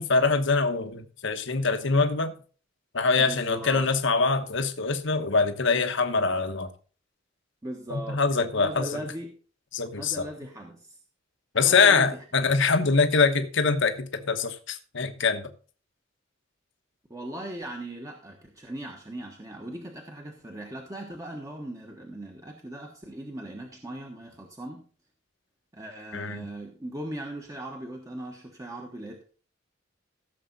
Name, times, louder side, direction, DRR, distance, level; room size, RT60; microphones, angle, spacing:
voice 1, 0.0-2.4 2.9-6.7 7.9-8.9 9.7-10.3 11.5-15.5 26.1-26.5, left 4 dB, 65° left, 1.1 m, -24 dB
voice 2, 3.2-3.9 7.6-8.2 8.5-9.4 10.0-11.0 11.6-12.2 17.1-24.8 25.7-29.2, right 1 dB, 15° right, 1.3 m, -39 dB
15.5 x 7.1 x 4.1 m
head